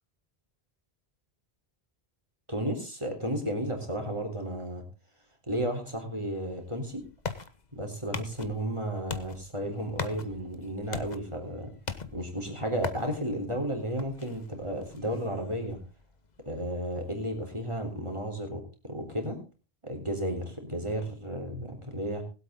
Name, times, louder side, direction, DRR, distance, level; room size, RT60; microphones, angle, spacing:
voice 1, 2.5-4.8 5.5-7.0 7.7-11.7 12.0-15.8 16.5-19.4 19.8-22.2, right 1 dB, 30° right, 2 dB, 3.5 m, -33 dB
sound 1, 6.5-18.0, left 5 dB, 45° left, 1.2 m, -42 dB
20.5 x 8.3 x 3.8 m, 0.33 s
omnidirectional pair, 1.1 m